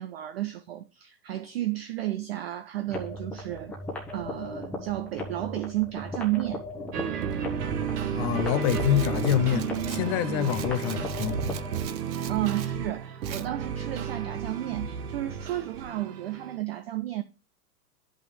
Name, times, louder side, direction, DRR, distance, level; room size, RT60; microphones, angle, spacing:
voice 1, 0.0-3.8 4.1-6.6 12.3-17.2, right 15 dB, 40° right, 0.5 m, -32 dB
sound 1, 2.9-11.9, left 1 dB, 5° left, 1.0 m, -38 dB
sound 2, 6.9-16.6, right 7 dB, 65° right, 1.3 m, -32 dB
voice 2, 8.1-11.5, left 10 dB, 25° left, 0.6 m, -26 dB
Rattle, 8.6-12.7 13.2-13.5, right 10 dB, 90° right, 0.8 m, -43 dB
11.0 x 5.5 x 3.2 m
hypercardioid pair, 130°, 50 cm